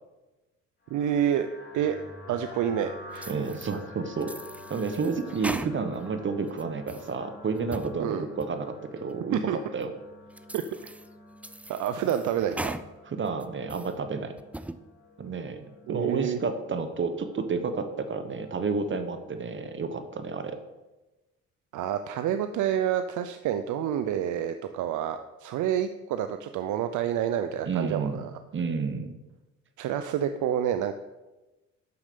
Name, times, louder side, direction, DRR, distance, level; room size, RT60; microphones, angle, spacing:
sound 1, 0.9-20.6, left 2 dB, 35° left, 3.1 m, -49 dB
voice 1, 0.9-1.5 1.7-2.0 2.3-3.4 8.0-8.3 9.3-9.6 10.5-10.6 11.7-12.8 15.9-16.4 21.7-28.3 29.8-30.9, right 10 dB, 75° right, 9 dB, 0.6 m, -28 dB
sound 2, 3.2-3.8 4.2-6.1 6.5-7.1 7.6-8.0 8.4-8.5 9.1-9.2 9.8-9.9 10.4-11.1 11.4-12.9 13.3-13.9 14.4-14.8, right 1 dB, 5° right, 0.4 m, -39 dB
voice 2, 3.3-4.3 4.7-9.9 13.1-14.3 15.2-15.6 15.9-20.6 27.7-28.2 28.5-29.2, right 4 dB, 40° right, 9 dB, 0.9 m, -30 dB
6.9 x 6.4 x 6.7 m, 1.1 s
cardioid pair, 90°, 30 cm